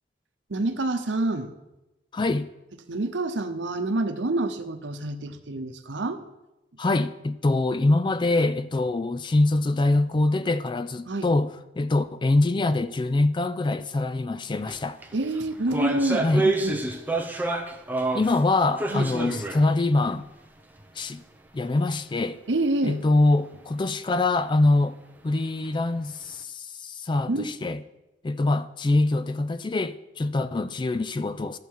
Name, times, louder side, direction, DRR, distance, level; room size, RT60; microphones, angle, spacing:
voice 1, 0.5-1.5 2.2-2.3 2.9-6.2 11.1-11.3 15.1-16.8 18.9-19.1 22.5-23.0 27.3-27.5, right 2 dB, 85° right, 0.9 m, -27 dB
voice 2, 2.1-2.5 6.8-11.5 11.8-15.0 16.2-16.5 18.1-20.3 21.0-21.2 21.5-22.4 22.8-24.9 25.2-27.8 28.2-31.6, left 2 dB, 25° left, 0.4 m, -24 dB
sound 1, 14.6-14.8 15.0-18.4 18.8-19.7 20.0-20.1 20.8-20.9, right 2 dB, 10° right, 0.8 m, -28 dB
13.0 x 6.7 x 4.7 m
head